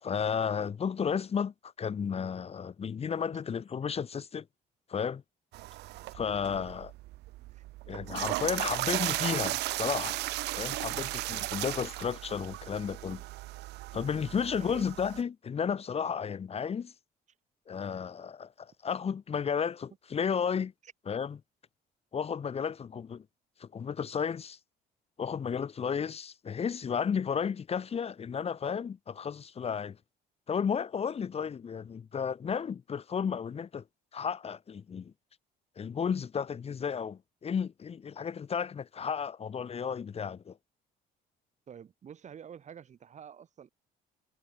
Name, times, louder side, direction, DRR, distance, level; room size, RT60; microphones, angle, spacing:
voice 1, 0.0-4.5 4.9-5.2 6.1-6.9 7.9-10.2 10.5-13.2 13.9-16.9 17.7-20.7 21.1-21.4 22.1-23.2 23.6-24.6 25.2-30.0 30.5-33.8 34.1-35.1 35.8-40.6, left 7 dB, 35° left, 2.1 m, -33 dB
sound 1, 5.5-15.2, right 18 dB, 80° right, 1.6 m, -36 dB
voice 2, 14.5-14.9 20.8-20.9 41.7-43.7, right 8 dB, 45° right, 4.6 m, -48 dB
cardioid pair, 110°, 17 cm